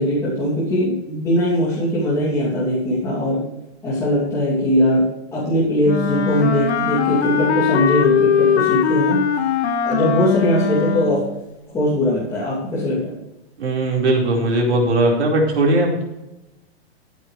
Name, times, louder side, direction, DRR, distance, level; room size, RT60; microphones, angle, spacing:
voice 1, 0.0-3.5 3.8-9.2 9.8-11.2 11.7-13.2, left 1 dB, 10° left, -8 dB, 2.8 m, -20 dB
Wind instrument woodwind instrument, 5.8-11.4, left 7 dB, 80° left, 1.6 m, -20 dB
voice 2, 13.6-16.0, right 1 dB, 85° right, -2 dB, 4.8 m, -18 dB
15.0 x 9.3 x 3.3 m, 0.93 s
hypercardioid pair, 165°, 33 cm